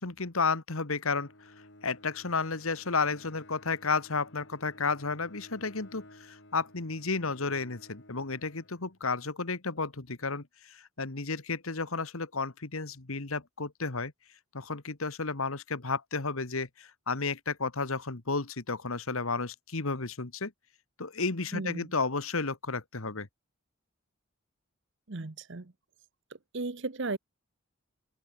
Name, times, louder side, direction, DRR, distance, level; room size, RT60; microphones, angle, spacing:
voice 1, 0.0-1.5 1.8-14.1 14.5-20.5 21.0-23.3, left 4 dB, 75° left, 1.7 m, -32 dB
Bowed string instrument, 1.0-9.2, left 1 dB, 55° left, 7.1 m, -55 dB
voice 2, 21.5-21.9 25.1-25.7 26.5-27.2, right 3 dB, 55° right, 1.0 m, -35 dB
head